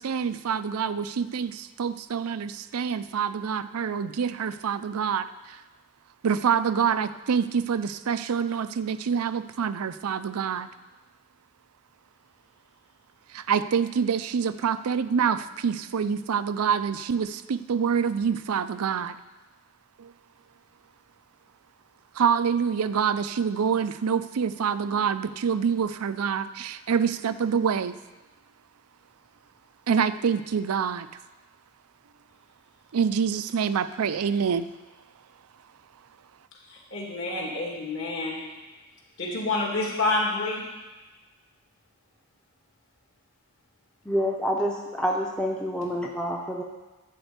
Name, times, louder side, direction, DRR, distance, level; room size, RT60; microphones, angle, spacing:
voice 1, 0.0-5.6 6.2-10.7 13.3-19.2 20.0-20.1 22.2-27.9 29.9-31.1 32.9-34.7, right 7 dB, 85° right, 13 dB, 0.5 m, -26 dB
voice 2, 36.7-38.4 39.2-40.6, left 2 dB, 55° left, -2 dB, 2.6 m, -28 dB
voice 3, 44.0-46.6, equal, 5° left, -1 dB, 0.6 m, -27 dB
12.5 x 4.4 x 8.1 m, 1.2 s
head